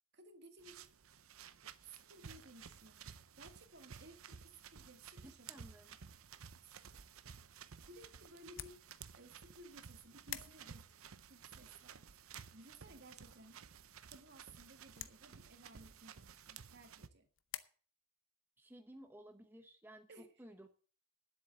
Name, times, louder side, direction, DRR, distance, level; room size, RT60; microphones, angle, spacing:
voice 1, 0.1-0.9 1.8-3.0 3.4-5.7 6.6-6.8 7.9-8.8 9.1-12.1 12.5-13.6 14.1-17.3 20.1-20.4, right 2 dB, 55° right, 6 dB, 1.9 m, -59 dB
sound 1, 0.6-17.1, right 7 dB, 80° right, 0.8 m, -55 dB
voice 2, 5.2-5.9 18.6-20.7, right 1 dB, 10° right, 6 dB, 0.8 m, -56 dB
sound 2, 8.4-17.6, left 12 dB, 65° left, 0.8 m, -54 dB
10.0 x 8.1 x 7.7 m, 0.42 s
head